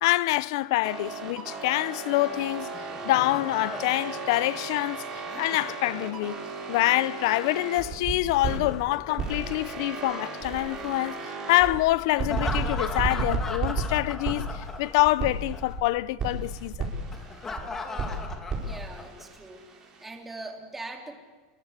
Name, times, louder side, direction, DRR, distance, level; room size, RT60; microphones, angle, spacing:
voice 1, 0.0-2.7 3.0-6.4 6.7-16.9, left 18 dB, 60° left, 0.7 m, -26 dB
sound 1, 0.8-8.7 9.1-11.8 12.2-15.8 16.2-17.6 18.0-20.0, right 4 dB, 25° right, 4.9 m, -34 dB
Laughter, 2.6-6.6 8.3-10.4 12.1-15.2 15.5-15.6 17.1-19.2, left 4 dB, 15° left, 2.4 m, -38 dB
voice 2, 18.6-19.7 20.0-21.2, right 2 dB, 10° right, 3.1 m, -41 dB
26.0 x 23.0 x 8.3 m
supercardioid pair, 160°, 3 cm